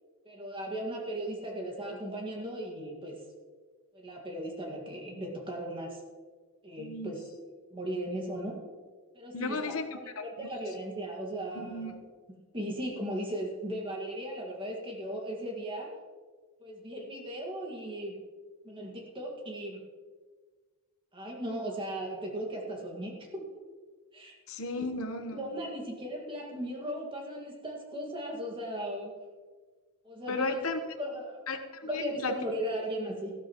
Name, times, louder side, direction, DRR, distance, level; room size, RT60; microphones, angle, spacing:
voice 1, 0.3-3.2 4.0-6.0 6.6-7.2 7.7-8.6 9.1-11.9 12.5-15.9 16.6-18.2 18.6-19.8 21.1-23.4 24.1-24.4 24.8-24.9 25.3-29.1 30.0-30.6 31.0-31.4 31.9-33.3, right 1 dB, 25° right, 0 dB, 1.9 m, -37 dB
voice 2, 6.8-7.1 9.3-9.9 10.2-10.5 11.5-12.0 24.5-25.4 30.3-30.8 31.5-32.3, left 3 dB, 70° left, 7 dB, 1.1 m, -34 dB
14.5 x 13.0 x 3.0 m, 1.5 s
head